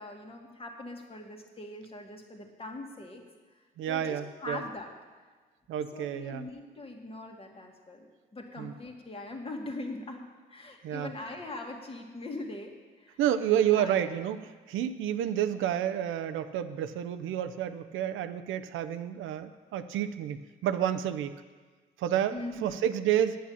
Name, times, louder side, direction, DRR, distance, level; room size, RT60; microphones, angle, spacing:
voice 1, 0.0-3.2 3.9-4.9 5.9-10.2 10.5-13.2 13.7-13.9 22.3-22.9, left 2 dB, 30° left, 2 dB, 1.9 m, -41 dB
voice 2, 3.8-4.6 5.7-6.5 8.6-8.7 10.8-11.1 13.2-21.4 22.0-23.4, right 10 dB, 85° right, 10 dB, 0.6 m, -30 dB
8.6 x 8.6 x 7.2 m, 1.4 s
cardioid pair, 90°, 20 cm